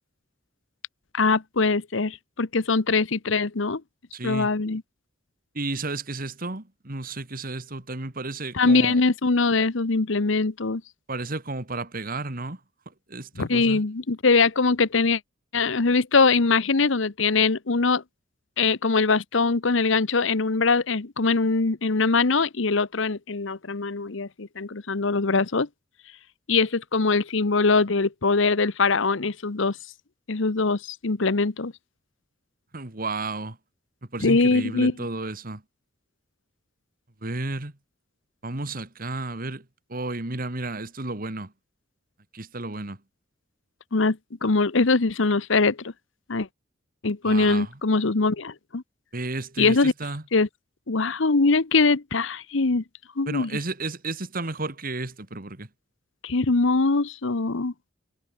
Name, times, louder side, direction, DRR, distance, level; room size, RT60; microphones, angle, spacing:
voice 1, 1.1-3.8 4.2-4.8 8.5-10.8 13.4-15.2 15.5-18.0 18.6-25.7 26.5-29.8 30.3-31.7 34.2-34.9 43.9-45.9 46.3-46.5 47.0-48.8 49.6-49.9 50.3-50.5 50.9-52.8 53.2-53.5 56.2-57.7, left 4 dB, 70° left, 1.0 m, -22 dB
voice 2, 4.1-4.5 5.5-9.0 11.1-12.6 12.9-13.8 32.7-33.6 34.1-35.6 37.2-37.7 38.4-41.5 42.3-43.0 47.2-47.7 49.1-50.2 53.3-55.7, right 2 dB, 45° right, 2.0 m, -32 dB
head